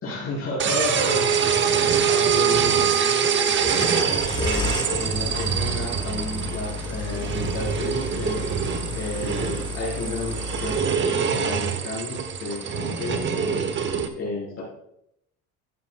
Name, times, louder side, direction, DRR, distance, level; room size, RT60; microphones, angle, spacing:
voice 1, 0.0-8.4 8.9-13.9 14.2-14.6, left 2 dB, 40° left, -6 dB, 4.0 m, -32 dB
sound 1, 0.6-14.1, right 7 dB, 35° right, 0.9 m, -24 dB
sound 2, 3.8-10.8, left 4 dB, 10° left, 0.6 m, -32 dB
12.5 x 8.7 x 2.3 m, 0.76 s
cardioid pair, 120°, 34 cm